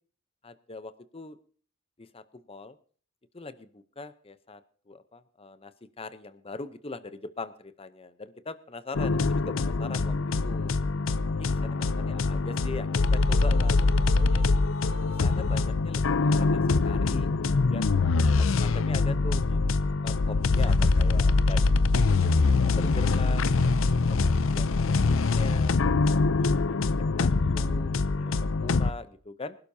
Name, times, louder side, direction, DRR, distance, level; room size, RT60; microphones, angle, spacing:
voice 1, 0.4-1.4 2.0-2.8 3.3-4.6 4.9-5.7 6.0-10.7 11.4-14.4 15.1-17.9 18.4-19.6 20.0-21.9 22.2-22.3 22.6-23.5 24.1-24.9 25.3-25.7 26.2-29.6, left 3 dB, 30° left, 13 dB, 0.7 m, -41 dB
sound 1, 8.9-28.9, left 3 dB, 70° left, 0.6 m, -24 dB
24.5 x 12.0 x 2.8 m, 0.44 s
head